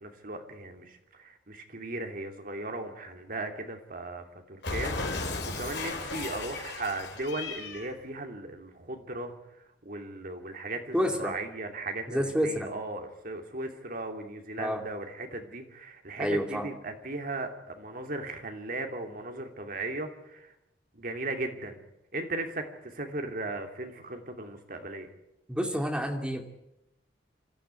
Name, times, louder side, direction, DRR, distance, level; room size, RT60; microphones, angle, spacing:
voice 1, 0.0-9.3 9.8-20.5 20.9-21.8 22.1-25.1, right 2 dB, 50° right, 4 dB, 2.9 m, -37 dB
Cat, 4.6-7.9, left 3 dB, 65° left, 3.8 m, -35 dB
voice 2, 10.9-11.3 12.1-12.7 14.6-14.8 16.2-16.7 25.5-26.4, equal, 5° right, 3 dB, 2.6 m, -29 dB
26.0 x 14.0 x 9.7 m, 0.88 s
head